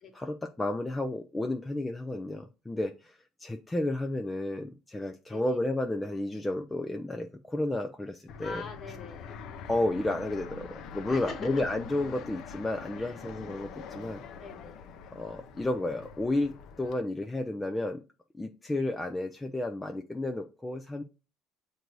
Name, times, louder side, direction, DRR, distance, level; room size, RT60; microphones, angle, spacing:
voice 1, 0.1-8.6 9.7-14.2 15.1-18.0 18.3-21.0, left 2 dB, 10° left, 5 dB, 0.4 m, -32 dB
Fixed-wing aircraft airplane, 8.3-17.0, left 6 dB, 55° left, 0.6 m, -44 dB
voice 2, 8.4-9.3 11.1-11.5 13.0-13.2 14.4-14.8, left 4 dB, 35° left, 5 dB, 1.3 m, -43 dB
7.9 x 2.6 x 4.6 m, 0.33 s
cardioid pair, 145°, 0 cm